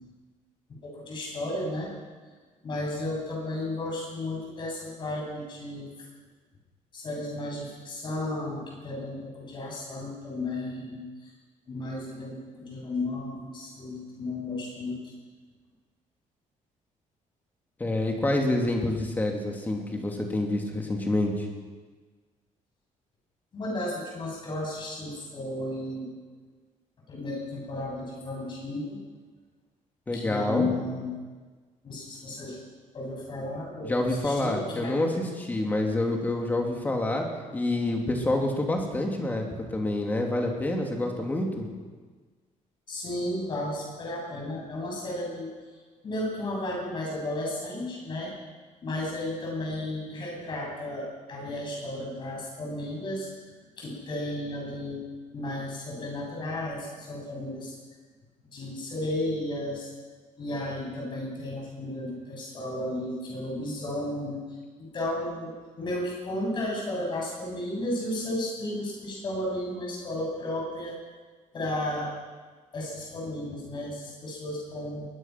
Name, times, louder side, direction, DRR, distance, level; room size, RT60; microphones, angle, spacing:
voice 1, 0.8-1.9 2.6-5.9 6.9-11.3 11.7-15.0 23.5-26.1 27.1-29.0 30.1-31.1 31.8-32.6 32.9-34.9 42.9-45.5 46.0-48.3 48.8-53.3 53.8-55.0 55.3-57.8 58.4-59.9 60.4-64.4 64.8-65.5 65.8-70.9 71.5-72.1 72.7-75.1, left 1 dB, 35° left, -2 dB, 7.8 m, -33 dB
voice 2, 17.8-21.5 30.1-30.7 33.8-37.3 37.5-41.7, left 1 dB, 15° left, 1 dB, 2.9 m, -27 dB
21.5 x 21.0 x 6.1 m, 1.4 s
cardioid pair, 180°, 14 cm